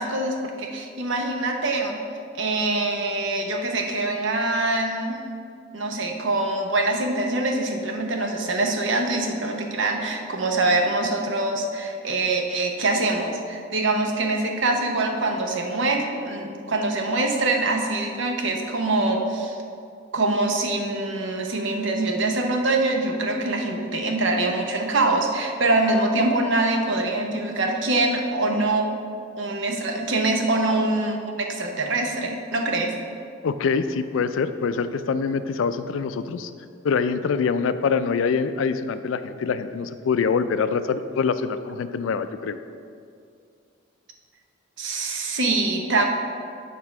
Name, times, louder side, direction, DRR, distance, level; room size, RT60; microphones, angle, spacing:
voice 1, 0.0-2.0 2.3-5.2 5.7-19.6 20.1-28.9 29.3-32.9 44.8-46.0, right 2 dB, 65° right, 3 dB, 0.8 m, -24 dB
voice 2, 33.4-36.5 36.8-42.6, left 5 dB, 80° left, 11 dB, 0.4 m, -24 dB
8.5 x 3.7 x 5.8 m, 2.4 s
head